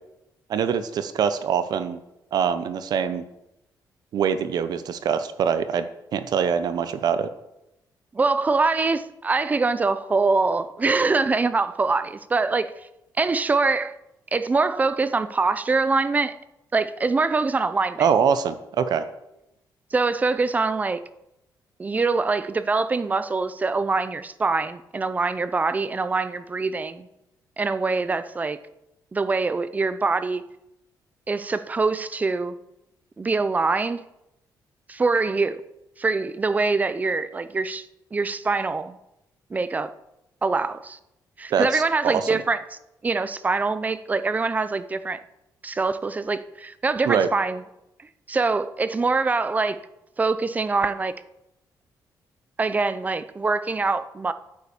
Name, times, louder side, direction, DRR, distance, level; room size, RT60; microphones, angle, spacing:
voice 1, 0.5-2.0 2.3-3.2 4.1-7.3 18.0-19.1 41.5-42.4 47.1-47.3, right 7 dB, 65° right, 0.8 m, -24 dB
voice 2, 8.1-12.7 13.2-14.0 14.3-16.4 16.7-18.1 19.9-21.0 21.8-27.1 27.6-28.6 29.1-30.4 31.3-32.6 33.2-34.0 34.9-35.6 36.0-39.0 39.5-39.9 40.4-41.0 41.4-42.6 43.0-45.2 45.6-47.6 48.3-49.8 50.2-51.1 52.6-54.3, right 3 dB, 20° right, 0.6 m, -24 dB
9.5 x 9.2 x 7.2 m
cardioid pair, 150°, 7 cm